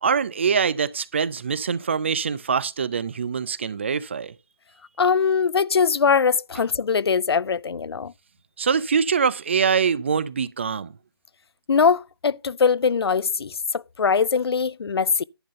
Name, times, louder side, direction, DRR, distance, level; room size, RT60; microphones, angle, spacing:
voice 1, 0.0-4.3 8.6-10.9, right 6 dB, 30° right, 0.4 m, -24 dB
voice 2, 5.0-8.1 11.7-15.2, left 5 dB, 75° left, 0.4 m, -21 dB
10.5 x 3.8 x 6.5 m
figure-of-eight pair, 160°, 13 cm